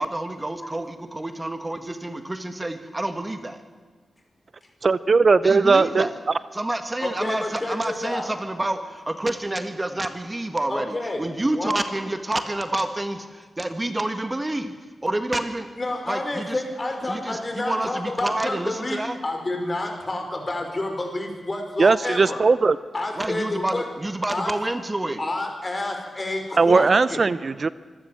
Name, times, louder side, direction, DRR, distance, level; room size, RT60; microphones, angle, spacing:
voice 1, 0.0-3.6 5.4-6.1 6.5-14.8 15.0-15.7 16.1-16.6 17.1-19.2 23.2-25.2, right 1 dB, 25° right, 8 dB, 1.6 m, -28 dB
voice 2, 4.8-6.0 21.8-22.8 26.6-27.7, right 4 dB, 55° right, 16 dB, 0.6 m, -18 dB
voice 3, 7.0-8.3 10.7-11.2 11.5-11.7 15.8-22.4 22.9-23.9 24.3-24.5 25.2-27.2, left 2 dB, 35° left, 4 dB, 5.2 m, -29 dB
25.5 x 13.5 x 7.5 m, 1.5 s
cardioid pair, 45°, 0 cm